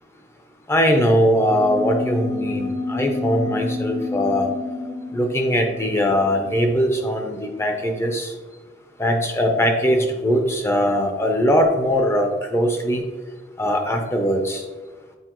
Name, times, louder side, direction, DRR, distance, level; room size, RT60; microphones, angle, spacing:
voice 1, 0.7-4.5 5.1-8.3 9.0-13.0 13.6-14.6, equal, 15° left, 3 dB, 0.6 m, -20 dB
sound 1, 1.4-7.4, left 2 dB, 35° left, 1.0 m, -29 dB
8.0 x 4.5 x 3.0 m, 1.3 s
head